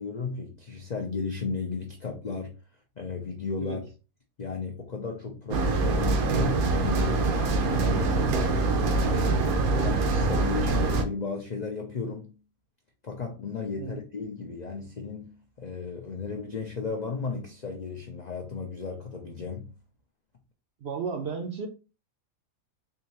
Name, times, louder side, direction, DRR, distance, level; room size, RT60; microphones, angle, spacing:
voice 1, 0.0-2.5 3.0-3.8 4.4-9.4 9.7-12.4 13.0-19.7, left 5 dB, 65° left, 0.4 m, -34 dB
sound 1, 5.5-11.0, right 3 dB, 80° right, 1.1 m, -24 dB
voice 2, 20.8-21.7, right 5 dB, 65° right, 0.7 m, -33 dB
3.7 x 2.6 x 2.9 m
omnidirectional pair, 1.5 m